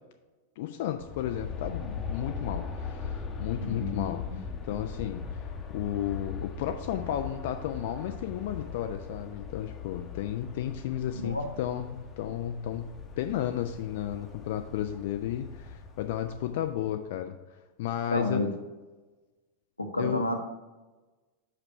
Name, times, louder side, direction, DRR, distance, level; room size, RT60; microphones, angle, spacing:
voice 1, 0.6-5.3 5.7-18.4 20.0-20.2, left 11 dB, 50° left, 6 dB, 0.4 m, -33 dB
Aircraft, 0.9-16.9, left 5 dB, 20° left, 0.9 m, -40 dB
voice 2, 3.6-4.4 11.1-11.4 18.1-18.5 19.8-20.4, left 2 dB, 85° left, 5 dB, 0.8 m, -31 dB
5.3 x 5.1 x 5.6 m, 1.2 s
figure-of-eight pair, 90°, 0 cm